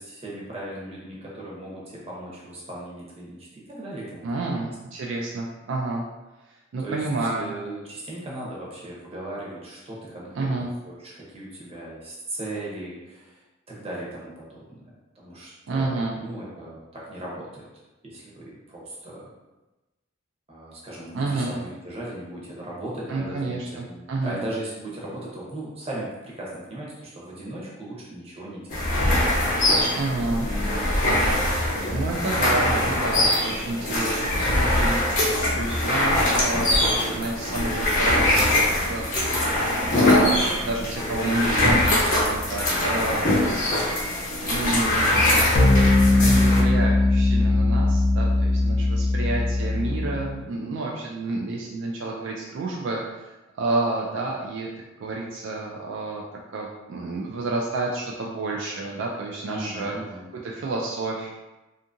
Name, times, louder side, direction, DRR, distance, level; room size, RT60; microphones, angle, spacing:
voice 1, 0.0-4.7 6.8-7.1 7.3-13.4 13.7-14.8 15.1-17.7 18.0-19.3 20.5-28.8 39.9-40.6 49.9-50.8 59.5-60.3, right 1 dB, 30° right, -5 dB, 0.7 m, -37 dB
voice 2, 4.2-6.0 6.5-7.5 10.4-10.7 15.7-16.2 21.1-21.6 23.1-24.4 30.0-30.5 31.9-35.0 35.5-39.1 40.0-43.4 44.4-45.1 46.2-54.7 55.0-56.2 56.5-60.0 60.4-61.3, right 2 dB, 65° right, -2 dB, 0.3 m, -29 dB
sound 1, 28.7-46.6, left 1 dB, 40° left, 0.7 m, -22 dB
sound 2, 45.5-50.3, left 2 dB, 80° left, 0.7 m, -20 dB
2.7 x 2.5 x 2.5 m, 1.1 s
head